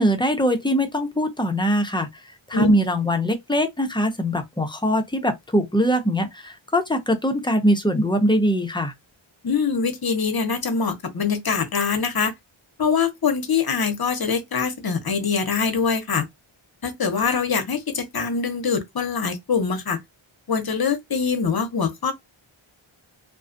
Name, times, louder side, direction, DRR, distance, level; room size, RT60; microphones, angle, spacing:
voice 1, 0.0-2.2 2.5-8.9, equal, 10° left, 0.5 m, -22 dB
voice 2, 9.4-12.3 12.8-16.3 16.8-20.0 20.5-22.1, left 5 dB, 50° left, 0.7 m, -23 dB
2.4 x 2.3 x 2.5 m
wide cardioid pair, 55°, 49 cm